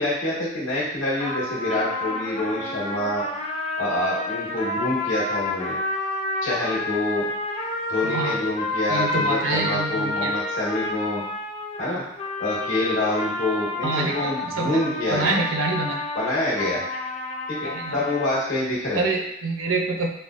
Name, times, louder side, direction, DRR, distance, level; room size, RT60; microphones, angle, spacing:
voice 1, 0.0-3.2 3.8-5.8 6.4-7.3 7.9-11.2 11.8-12.0 12.4-15.4 16.1-16.8 17.5-19.0, left 1 dB, 70° left, -7 dB, 1.4 m, -26 dB
sound 1, 1.2-18.4, left 2 dB, 30° left, 0.5 m, -29 dB
voice 2, 8.0-8.4 8.9-10.3 13.8-14.3 14.6-14.8 15.1-16.0 17.6-17.9 18.9-20.1, right 3 dB, 80° right, 2 dB, 0.6 m, -26 dB
5.3 x 2.2 x 2.4 m, 0.84 s
head